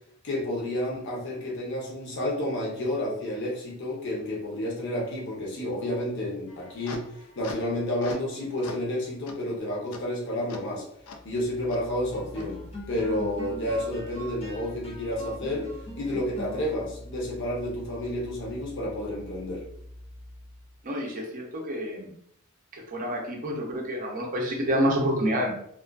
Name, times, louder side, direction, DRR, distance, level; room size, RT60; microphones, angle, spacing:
voice 1, 0.2-7.0 7.4-10.8 11.2-12.6 12.9-15.7 15.9-19.6, left 1 dB, 55° left, -3 dB, 0.8 m, -30 dB
sound 1, 6.5-8.3 8.6-8.9 9.3-9.4 9.9-10.0 10.5-10.6 11.1-11.2 11.7-11.8 12.4-12.5, left 4 dB, 85° left, 0.4 m, -41 dB
sound 2, 11.1-20.7, equal, 25° left, 0.4 m, -42 dB
voice 2, 20.8-22.1 22.7-25.5, equal, 40° right, -1 dB, 0.5 m, -28 dB
2.4 x 2.3 x 2.3 m, 0.68 s
head